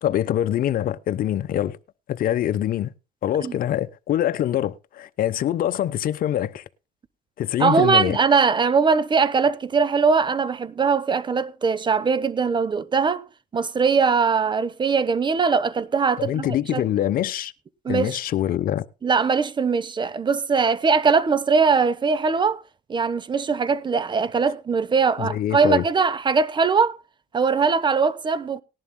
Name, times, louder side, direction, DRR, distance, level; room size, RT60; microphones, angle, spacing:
voice 1, 0.0-1.8 2.1-2.9 3.2-6.6 7.4-8.2 16.2-17.5 17.9-18.9 25.2-25.8, left 11 dB, 60° left, 0.8 m, -24 dB
voice 2, 7.6-13.2 13.5-16.8 17.8-18.2 19.0-22.6 22.9-27.0 27.3-28.6, right 5 dB, 25° right, 0.9 m, -21 dB
19.0 x 11.0 x 2.2 m
cardioid pair, 110°, 17 cm